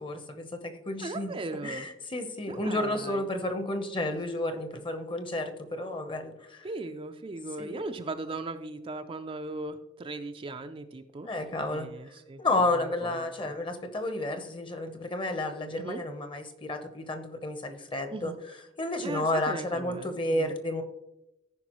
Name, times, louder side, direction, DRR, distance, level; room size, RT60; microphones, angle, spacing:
voice 1, 0.0-1.4 1.6-6.7 7.6-7.8 11.2-11.9 12.4-18.3 18.8-20.8, left 2 dB, 25° left, 7 dB, 0.9 m, -31 dB
voice 2, 1.0-1.9 2.4-3.2 4.1-4.4 6.6-11.3 11.7-12.4 12.7-13.5 15.8-16.0 18.1-18.4 19.0-20.6, right 2 dB, 30° right, 7 dB, 0.4 m, -38 dB
14.5 x 5.3 x 3.0 m, 0.90 s
head